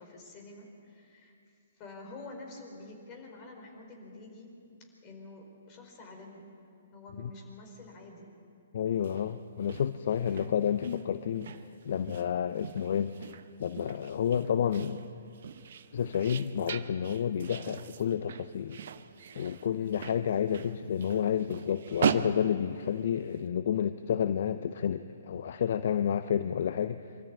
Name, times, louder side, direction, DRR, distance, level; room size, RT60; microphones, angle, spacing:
voice 1, 0.0-1.3 1.8-4.6 5.0-6.6 6.9-8.3 10.1-10.6 19.8-20.0, left 2 dB, 30° left, 2 dB, 4.6 m, -48 dB
voice 2, 8.7-13.3 13.6-15.0 15.9-18.8 19.3-27.0, left 8 dB, 50° left, 12 dB, 0.6 m, -30 dB
sound 1, 8.9-23.4, right 7 dB, 55° right, 0.8 m, -39 dB
24.5 x 13.5 x 8.7 m, 2.4 s
figure-of-eight pair, 125°, 0 cm